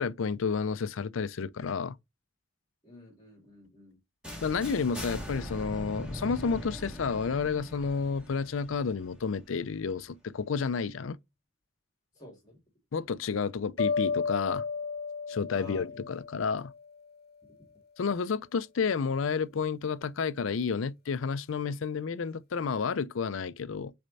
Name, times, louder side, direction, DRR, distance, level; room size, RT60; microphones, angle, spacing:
voice 1, 0.0-2.0 4.4-11.2 12.9-14.6 15.3-16.7 18.0-23.9, left 5 dB, 80° left, 0.5 m, -31 dB
voice 2, 2.8-4.0 12.1-12.6 15.3-16.0, left 3 dB, 20° left, 2.5 m, -47 dB
sound 1, 4.2-10.1, equal, 5° right, 1.6 m, -41 dB
sound 2, 13.8-16.9, left 5 dB, 50° left, 0.8 m, -33 dB
6.5 x 4.3 x 4.1 m
head